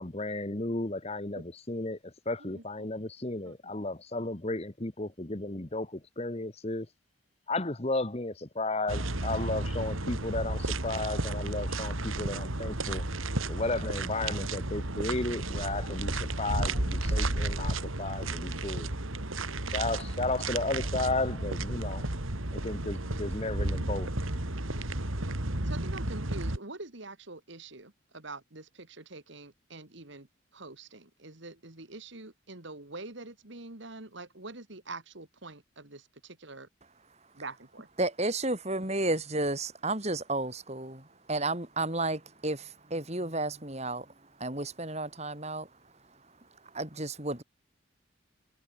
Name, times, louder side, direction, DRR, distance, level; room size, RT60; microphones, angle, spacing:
voice 1, 0.0-6.9 7.5-13.0 13.5-18.9 19.7-22.0 22.5-24.1, left 2 dB, 30° left, 1.2 m, -34 dB
voice 2, 2.4-2.9 3.4-3.7 25.6-30.3 30.5-36.7 37.3-37.9, right 3 dB, 60° right, 2.4 m, -45 dB
sound 1, 8.9-26.6, right 2 dB, 80° right, 3.0 m, -33 dB
voice 3, 38.0-47.4, right 2 dB, 30° right, 4.2 m, -33 dB
head